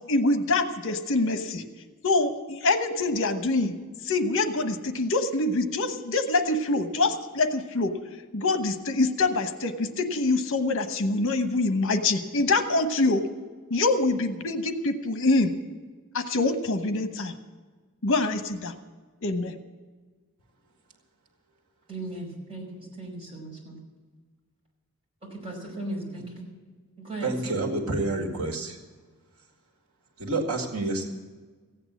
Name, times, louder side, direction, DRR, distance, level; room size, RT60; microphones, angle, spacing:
voice 1, 0.1-1.6 2.0-3.7 4.0-7.9 8.3-13.3 13.7-15.5 16.1-17.3 18.0-18.7 19.2-19.5, left 2 dB, 60° left, 8 dB, 1.0 m, -25 dB
voice 2, 21.9-23.8 25.3-26.5 27.0-27.6, right 2 dB, 25° right, -3 dB, 5.3 m, -37 dB
voice 3, 27.2-28.8 30.2-31.1, right 2 dB, 90° right, 1 dB, 2.1 m, -28 dB
15.5 x 8.9 x 8.3 m, 1.4 s
head